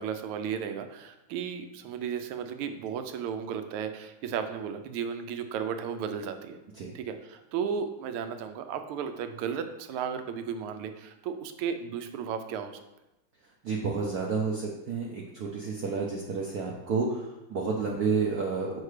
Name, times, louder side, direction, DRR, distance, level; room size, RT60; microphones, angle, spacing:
voice 1, 0.0-6.6 6.9-12.8, right 7 dB, 80° right, 8 dB, 1.5 m, -34 dB
voice 2, 13.6-18.8, right 4 dB, 65° right, -2 dB, 1.0 m, -30 dB
6.5 x 4.7 x 4.9 m, 0.97 s
omnidirectional pair, 2.4 m